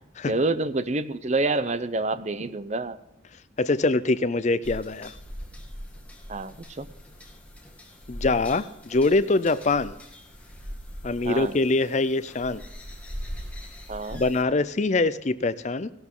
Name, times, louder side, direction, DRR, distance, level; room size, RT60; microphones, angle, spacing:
voice 1, 0.2-3.0 6.3-6.9 11.2-11.6 13.9-14.2, right 2 dB, 35° right, 13 dB, 0.6 m, -27 dB
voice 2, 3.6-5.1 8.1-10.0 11.0-12.6 14.1-15.9, left 3 dB, 35° left, 16 dB, 0.5 m, -24 dB
sound 1, 4.6-14.4, equal, 5° left, 2.1 m, -41 dB
16.5 x 12.0 x 3.8 m, 0.88 s
head